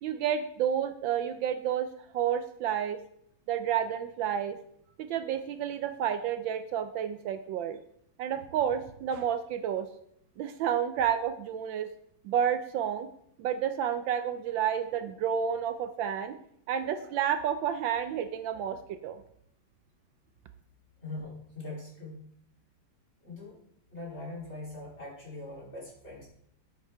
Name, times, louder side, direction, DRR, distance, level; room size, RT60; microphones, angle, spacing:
voice 1, 0.0-3.0 3.5-4.6 5.0-7.8 8.2-9.9 10.4-11.9 12.2-13.1 13.4-16.4 16.7-18.8 19.0-19.2, right 9 dB, 75° right, 9 dB, 1.3 m, -30 dB
voice 2, 21.0-22.3 23.2-23.6 23.9-26.3, left 2 dB, 30° left, -5 dB, 3.1 m, -42 dB
9.0 x 8.5 x 3.4 m, 0.69 s
omnidirectional pair, 2.2 m